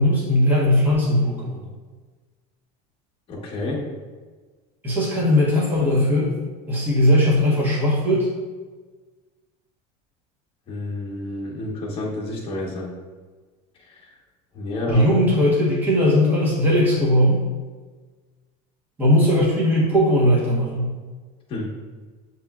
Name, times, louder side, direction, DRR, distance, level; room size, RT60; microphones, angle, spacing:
voice 1, 0.0-1.6 4.8-6.3 6.7-8.3 14.9-17.4 19.0-20.9, left 1 dB, 10° right, -6 dB, 0.9 m, -19 dB
voice 2, 3.3-3.8 10.7-12.9 13.8-14.1 14.5-15.1 21.5-21.7, left 2 dB, 30° left, -3 dB, 1.0 m, -29 dB
6.7 x 2.9 x 2.3 m, 1.4 s
cardioid pair, 155°, 19 cm